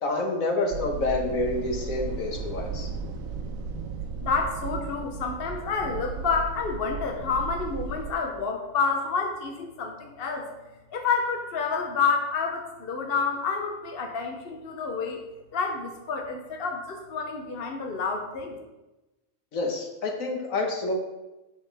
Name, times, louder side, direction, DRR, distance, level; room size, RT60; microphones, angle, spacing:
voice 1, 0.0-2.9 19.5-20.9, left 2 dB, 65° left, 1 dB, 1.6 m, -28 dB
sound 1, 0.7-8.1, right 5 dB, 70° right, 1.2 m, -35 dB
voice 2, 4.2-10.5 10.9-15.2 15.5-18.6, left 5 dB, 50° left, 3 dB, 0.9 m, -29 dB
8.2 x 6.7 x 3.4 m, 1.0 s
omnidirectional pair, 1.5 m